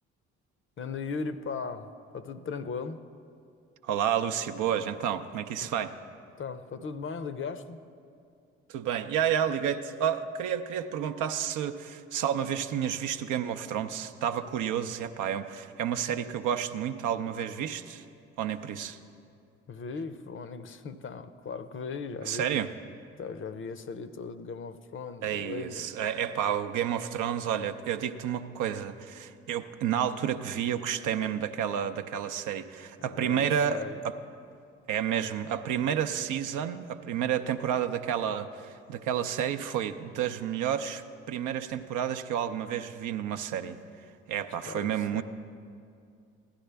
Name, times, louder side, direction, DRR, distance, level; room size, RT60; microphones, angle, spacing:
voice 1, 0.8-3.1 5.6-5.7 6.4-7.8 19.7-22.6 23.2-25.9 33.0-34.0 44.6-45.2, left 5 dB, 40° left, 12 dB, 0.6 m, -38 dB
voice 2, 3.8-6.0 8.7-18.0 18.4-19.0 22.2-22.7 25.2-34.2 34.9-41.0 41.3-43.8 44.3-45.2, right 9 dB, 65° right, 9 dB, 0.6 m, -30 dB
15.5 x 11.0 x 3.4 m, 2.4 s
hypercardioid pair, 55°, 33 cm